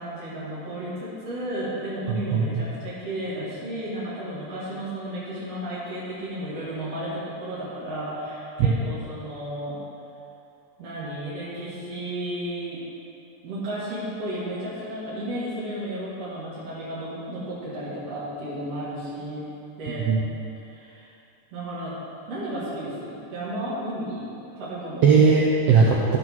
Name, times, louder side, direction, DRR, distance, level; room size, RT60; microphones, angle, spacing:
voice 1, 0.0-9.8 10.8-12.8 13.4-19.5 19.8-20.1 20.6-21.1 21.5-22.0 22.3-24.3 24.6-25.1, right 1 dB, 50° right, -11 dB, 3.2 m, -33 dB
voice 2, 2.1-2.6 8.6-8.8 19.9-20.2 25.0-26.2, right 5 dB, 80° right, -2 dB, 1.4 m, -19 dB
14.0 x 5.3 x 6.1 m, 2.7 s
omnidirectional pair, 3.7 m